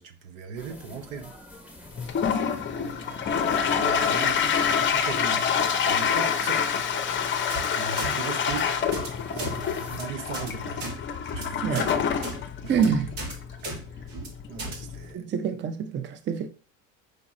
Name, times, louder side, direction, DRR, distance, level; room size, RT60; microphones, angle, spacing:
voice 1, 0.0-1.3 2.8-3.5 3.8-5.5 5.9-6.9 7.4-8.8 9.3-10.9 11.3-12.0 12.6-12.7 13.9-14.1 14.5-15.2, right 6 dB, 85° right, 0.9 m, -39 dB
sound 1, 0.6-10.0, equal, 5° right, 1.1 m, -46 dB
Toilet flush, 2.0-15.1, left 7 dB, 30° left, 0.6 m, -27 dB
sound 2, 7.5-7.7 8.0-8.1 8.4-8.6 8.9-9.1 9.4-9.5 9.8-10.0 10.3-10.5 10.8-10.9 11.3-11.4 11.7-11.9 12.2-12.4 12.7-12.9 13.2-13.3 13.6-13.8 14.1-14.3 14.6-14.8, right 2 dB, 65° right, 1.6 m, -35 dB
voice 2, 12.7-13.1 15.1-16.5, right 7 dB, 30° right, 0.5 m, -26 dB
5.1 x 2.4 x 4.1 m
supercardioid pair, 100°, 39 cm